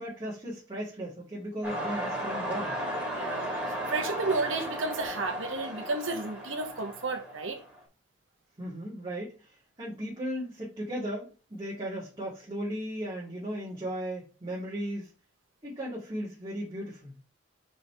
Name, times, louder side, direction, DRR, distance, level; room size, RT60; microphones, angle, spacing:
voice 1, 0.0-2.8 8.6-15.1 15.6-17.1, equal, 25° right, 2.4 m, -36 dB
sound 1, 1.6-7.8, equal, 10° right, 2.9 m, -35 dB
voice 2, 3.1-7.6, right 3 dB, 75° right, 1.5 m, -32 dB
5.3 x 4.9 x 4.6 m
head